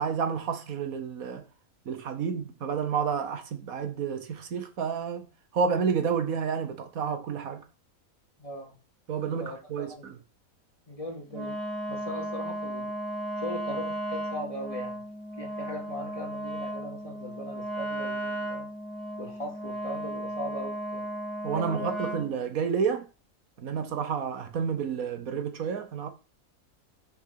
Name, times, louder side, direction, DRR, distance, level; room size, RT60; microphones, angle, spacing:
voice 1, 0.0-1.4 1.9-5.3 5.5-7.6 9.1-10.2 21.4-23.1 23.6-26.1, right 6 dB, 75° right, 1.5 m, -30 dB
voice 2, 8.4-8.8 9.4-10.1 10.9-11.6 11.9-12.9 13.4-15.1 15.4-18.7 19.2-21.1 21.5-22.0, equal, 25° left, 2.5 m, -39 dB
Wind instrument woodwind instrument, 11.3-22.3, right 1 dB, ahead, 1.9 m, -35 dB
6.7 x 5.8 x 5.7 m
omnidirectional pair, 1.5 m